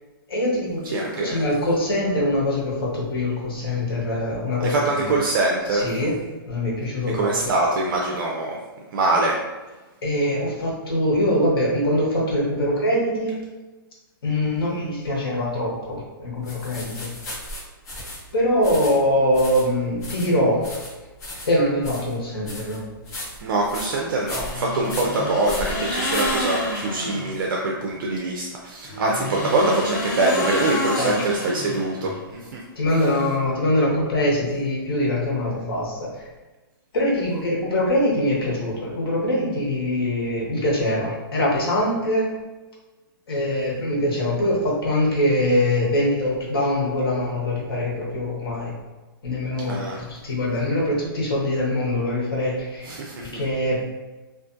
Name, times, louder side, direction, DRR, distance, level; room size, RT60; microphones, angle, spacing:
voice 1, 0.3-5.1 5.7-6.1 6.5-7.5 10.0-13.4 14.2-17.1 18.3-20.7 21.4-22.8 30.8-31.1 32.8-36.3 36.9-42.3 43.3-48.7 49.2-53.0 53.2-53.8, left 1 dB, 80° left, -4 dB, 1.0 m, -23 dB
voice 2, 0.9-1.4 4.6-5.9 7.1-8.6 8.9-9.4 23.4-32.6 49.7-50.0 52.8-53.4, right 2 dB, 60° right, -1 dB, 0.4 m, -24 dB
sound 1, 16.4-26.9, left 1 dB, 40° left, 1.0 m, -36 dB
sound 2, 24.2-27.4 28.8-32.2, left 1 dB, 20° left, 0.4 m, -29 dB
2.5 x 2.3 x 2.5 m, 1.2 s
hypercardioid pair, 155°, 12 cm